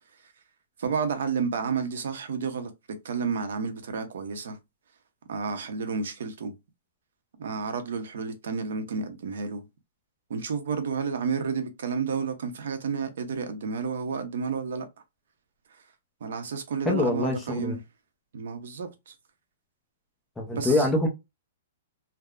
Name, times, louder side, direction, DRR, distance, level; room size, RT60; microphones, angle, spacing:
voice 1, 0.8-2.7 3.0-4.6 5.3-6.5 7.4-9.6 10.3-14.9 16.2-17.8 18.3-19.1 20.5-20.9, right 5 dB, 65° right, 0.7 m, -31 dB
voice 2, 16.9-17.8 20.4-21.1, left 2 dB, 5° left, 0.5 m, -25 dB
3.5 x 2.1 x 2.3 m
hypercardioid pair, 175°, 0 cm